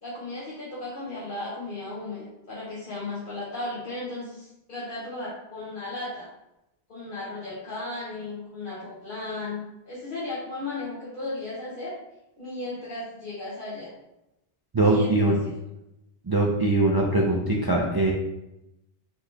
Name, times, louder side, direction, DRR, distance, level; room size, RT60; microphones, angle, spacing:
voice 1, 0.0-6.3 6.9-11.9 12.4-13.9 14.8-15.5, left 2 dB, 55° left, -8 dB, 1.1 m, -35 dB
voice 2, 14.7-15.4 16.3-18.1, right 2 dB, 35° right, -2 dB, 0.3 m, -22 dB
4.4 x 2.8 x 3.4 m, 0.89 s
omnidirectional pair, 1.1 m